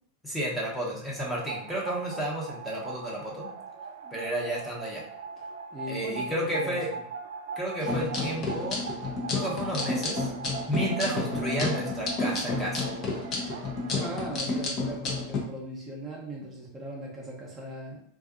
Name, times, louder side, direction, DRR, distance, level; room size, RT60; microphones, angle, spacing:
voice 1, 0.2-3.5 4.1-5.0 5.9-6.9 7.6-8.9 9.3-10.3 10.7-12.9, right 1 dB, 5° left, -5 dB, 0.9 m, -32 dB
sound 1, 1.2-14.1, right 5 dB, 80° right, 0.4 m, -40 dB
voice 2, 5.7-6.8 13.9-18.0, right 1 dB, 25° right, -3 dB, 0.7 m, -38 dB
sound 2, 7.8-15.4, left 3 dB, 40° left, 0.8 m, -31 dB
2.6 x 2.3 x 2.4 m, 0.64 s
hypercardioid pair, 105°, 0 cm